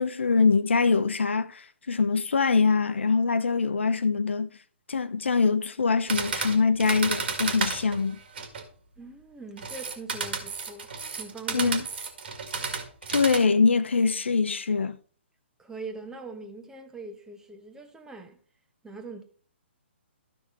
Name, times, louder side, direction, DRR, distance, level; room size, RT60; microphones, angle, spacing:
voice 1, 0.0-4.5 4.9-8.2 11.5-11.8 13.1-15.0, left 4 dB, 75° left, 0.7 m, -23 dB
sound 1, 6.1-8.7 9.6-13.4, right 5 dB, 60° right, 2.0 m, -32 dB
voice 2, 9.0-11.7 15.6-18.4 18.8-19.2, right 3 dB, 10° right, 1.1 m, -42 dB
13.0 x 6.0 x 3.2 m
figure-of-eight pair, 130°, 7 cm